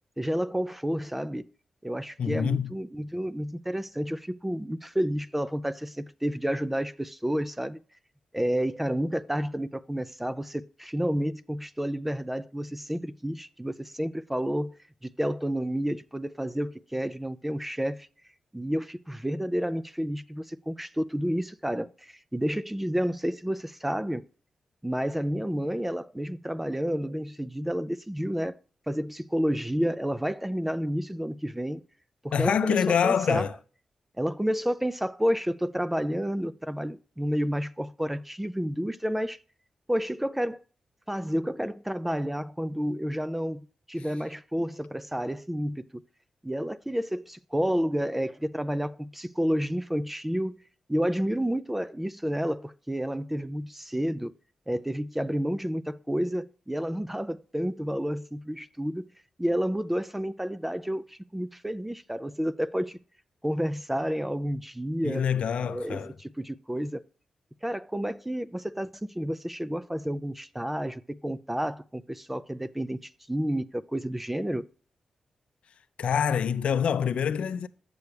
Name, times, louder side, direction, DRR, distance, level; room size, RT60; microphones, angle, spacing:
voice 1, 0.2-1.4 1.8-7.8 8.3-14.8 15.2-18.1 18.5-24.2 24.8-28.5 28.9-31.8 32.2-33.5 34.2-39.4 39.9-40.6 41.1-46.0 46.4-50.5 50.9-54.3 54.7-59.0 59.4-63.0 63.4-65.3 65.7-67.0 67.6-74.7, equal, 10° right, 0.3 m, -30 dB
voice 2, 2.2-2.8 32.3-33.5 65.0-66.1 76.0-77.7, left 7 dB, 75° left, 0.5 m, -26 dB
7.9 x 6.9 x 3.2 m
cardioid pair, 95°, 2 cm